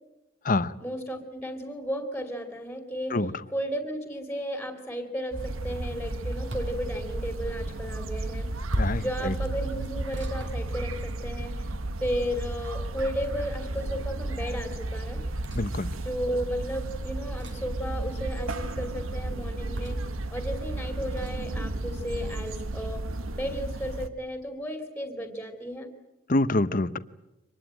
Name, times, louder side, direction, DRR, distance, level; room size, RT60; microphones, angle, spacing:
voice 1, 0.8-3.2 3.5-8.5 9.0-11.6 12.0-15.2 16.0-20.0 20.3-23.0 23.3-25.9, equal, 5° left, 2.7 m, -34 dB
sound 1, 5.3-24.1, right 2 dB, 90° right, 1.2 m, -33 dB
sound 2, 6.5-6.9 8.7-9.1 10.1-11.3 13.0-13.6 15.4-15.7 17.4-17.7 19.8-20.2 21.2-21.4, equal, 60° right, 4.4 m, -35 dB
voice 2, 8.8-9.3 15.5-15.9 26.3-27.0, left 2 dB, 40° left, 0.8 m, -26 dB
25.0 x 20.0 x 9.0 m
head